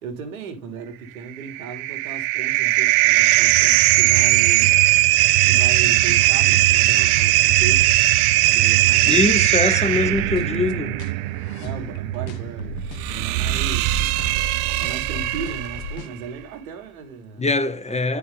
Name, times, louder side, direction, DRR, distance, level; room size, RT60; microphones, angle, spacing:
voice 1, 0.0-4.7 5.5-8.0 8.5-9.3 11.6-14.1 14.8-17.5 17.9-18.2, right 6 dB, 75° right, 1.8 m, -36 dB
sound 1, 1.4-15.9, right 16 dB, 55° right, 0.7 m, -19 dB
sound 2, 6.1-16.1, left 4 dB, 55° left, 1.3 m, -38 dB
voice 2, 9.1-11.0 17.4-18.2, left 3 dB, 15° left, 1.0 m, -22 dB
11.0 x 4.7 x 3.5 m
figure-of-eight pair, 60°, 42 cm